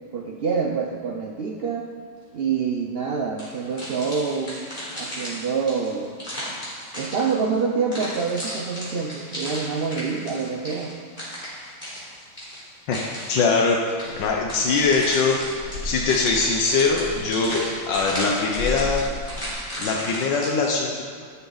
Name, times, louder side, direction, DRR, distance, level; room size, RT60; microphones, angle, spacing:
voice 1, 0.1-1.9 2.3-4.6 5.0-6.2 6.9-10.9, right 5 dB, 75° right, 1 dB, 0.5 m, -26 dB
sound 1, 3.4-7.5 7.9-13.5 14.0-20.5, equal, 25° left, 4.1 m, -34 dB
voice 2, 12.9-13.8 14.2-15.4 15.8-17.6 17.9-19.0 19.8-21.0, left 4 dB, 85° left, 0 dB, 1.6 m, -22 dB
sound 2, 14.0-19.5, left 2 dB, 70° left, 2.5 m, -36 dB
12.5 x 11.5 x 4.0 m, 2.1 s
omnidirectional pair, 1.9 m